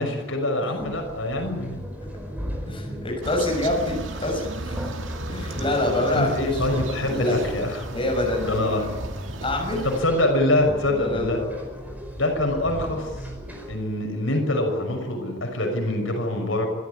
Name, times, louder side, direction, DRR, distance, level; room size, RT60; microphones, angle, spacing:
voice 1, 0.0-1.8 6.1-7.9 8.4-8.8 9.8-11.4 12.1-13.1 13.7-16.7, left 1 dB, 85° left, 3 dB, 6.2 m, -24 dB
sound 1, 0.8-13.8, equal, 10° right, 5.0 m, -37 dB
voice 2, 2.7-4.8 5.3-7.4 7.9-8.9 9.4-9.9 11.0-11.5, left 1 dB, 25° left, 0 dB, 6.5 m, -26 dB
sound 2, 3.2-10.0, right 2 dB, 75° right, 2.1 m, -34 dB
25.5 x 13.5 x 9.8 m, 1.3 s
head